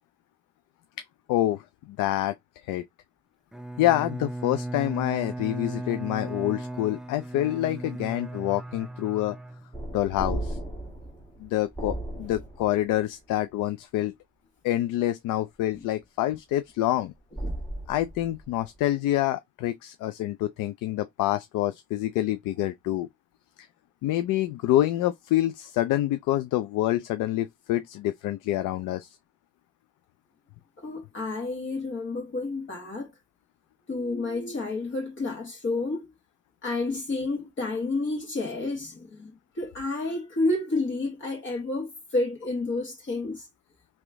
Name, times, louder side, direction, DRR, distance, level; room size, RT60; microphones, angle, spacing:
voice 1, 1.3-2.3 2.6-2.8 3.8-9.4 9.9-10.6 11.4-14.1 14.6-17.1 17.9-23.1 24.0-29.2, left 14 dB, 90° left, 0.5 m, -27 dB
Bowed string instrument, 3.5-10.1, right 1 dB, ahead, 0.4 m, -37 dB
sound 1, 9.7-13.0 17.3-18.6, right 1 dB, 15° left, 1.5 m, -35 dB
voice 2, 30.8-33.1 33.9-36.1 36.6-43.5, left 2 dB, 40° left, 1.6 m, -30 dB
3.1 x 3.0 x 3.4 m
cardioid pair, 90°, 30 cm